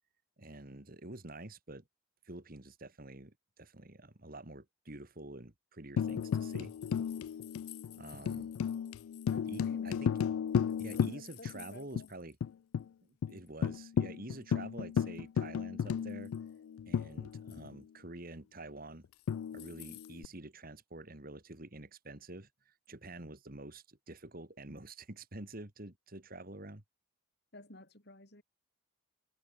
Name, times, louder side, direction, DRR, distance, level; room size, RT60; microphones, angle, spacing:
voice 1, 0.4-1.8 2.2-6.7 7.9-8.5 9.5-10.1 10.8-12.4 13.1-16.3 16.9-19.0 19.5-26.8, right 2 dB, 45° right, 2.4 m, -48 dB
Tambourine, 6.0-11.7 12.0-12.1 12.4-12.9 13.2-13.3 13.6-17.7 19.3-20.3, left 7 dB, 90° left, 0.3 m, -34 dB
voice 2, 8.2-8.6 9.3-10.4 10.6-10.8 11.1-12.1 27.5-28.4, left 1 dB, 50° left, 5.3 m, -53 dB
head